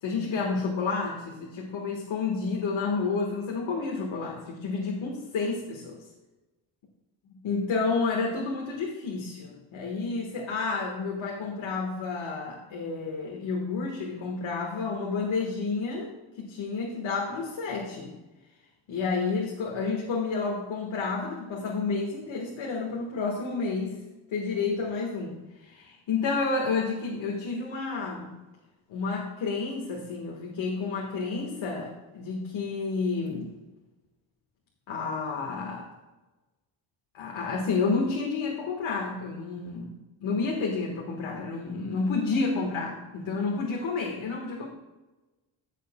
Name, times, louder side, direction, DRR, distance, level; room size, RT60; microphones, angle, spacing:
voice 1, 0.0-6.0 7.3-16.1 16.4-18.1 18.9-24.0 24.3-28.3 28.9-33.5 34.9-35.9 37.1-40.0 40.2-44.7, left 4 dB, 70° left, -1 dB, 1.6 m, -30 dB
15.0 x 6.6 x 2.3 m, 1.1 s
cardioid pair, 110°, 48 cm